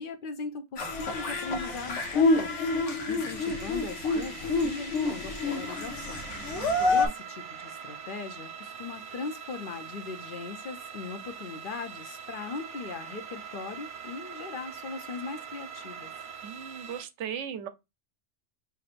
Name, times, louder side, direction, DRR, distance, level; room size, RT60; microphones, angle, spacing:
voice 1, 0.0-2.7 3.1-6.2 6.9-16.1, left 4 dB, 55° left, 0.7 m, -39 dB
sound 1, 0.8-7.1, left 3 dB, 90° left, 1.2 m, -28 dB
sound 2, 3.4-17.0, right 7 dB, 50° right, 0.8 m, -43 dB
voice 2, 6.3-7.1 16.4-17.7, right 8 dB, 90° right, 0.9 m, -38 dB
6.5 x 2.6 x 2.5 m
omnidirectional pair, 1.2 m